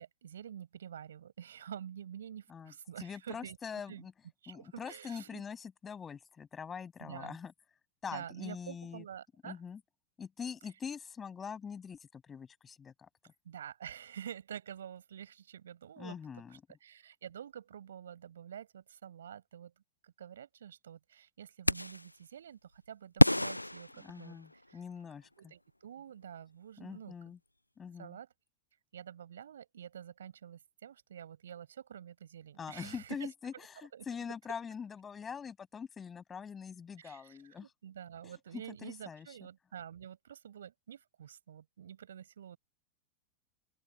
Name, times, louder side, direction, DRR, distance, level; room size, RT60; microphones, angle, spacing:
voice 1, 0.0-3.6 3.9-4.0 4.4-5.4 7.0-7.4 8.1-9.6 13.4-16.2 16.8-19.7 20.0-24.4 24.7-24.8 25.4-27.1 28.0-28.3 28.9-33.1 33.9-34.1 37.0-42.6, right 9 dB, 65° right, 8.0 m, -48 dB
voice 2, 2.5-4.1 4.5-7.5 8.0-9.0 9.4-9.8 10.2-13.3 16.0-16.6 24.0-25.5 26.8-27.4 27.8-28.2 32.6-37.7 38.2-39.4, left 6 dB, 20° left, 7.0 m, -44 dB
sound 1, 21.7-22.1 23.2-24.7, left 1 dB, 85° left, 0.5 m, -28 dB
figure-of-eight pair, 90°, 0 cm